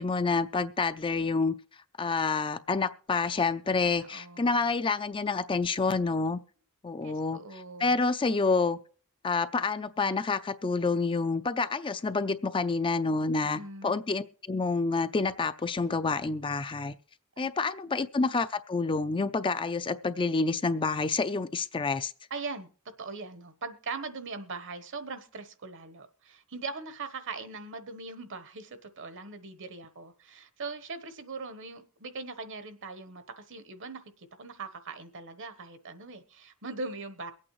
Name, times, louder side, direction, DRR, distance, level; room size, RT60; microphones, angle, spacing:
voice 1, 0.0-1.5 2.0-6.4 6.8-7.4 7.8-8.8 9.2-16.9 17.4-22.1, left 4 dB, 25° left, 11 dB, 0.4 m, -28 dB
voice 2, 4.0-4.7 7.0-8.0 13.4-14.0 17.4-17.5 22.3-22.7 23.0-37.3, right 4 dB, 60° right, 10 dB, 1.1 m, -41 dB
23.0 x 8.6 x 3.1 m, 0.42 s
head